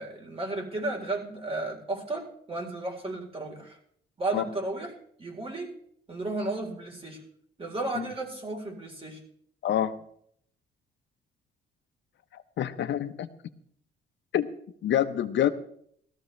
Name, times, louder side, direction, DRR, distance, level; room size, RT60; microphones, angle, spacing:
voice 1, 0.0-3.8 4.2-4.9 5.2-5.7 6.1-7.2 7.6-9.2, right 2 dB, 30° right, 1 dB, 4.0 m, -33 dB
voice 2, 9.6-10.0 12.6-13.3 14.3-14.5 14.8-15.5, left 10 dB, 65° left, 9 dB, 1.0 m, -26 dB
18.0 x 14.0 x 3.3 m, 0.68 s
cardioid pair, 90°, 20 cm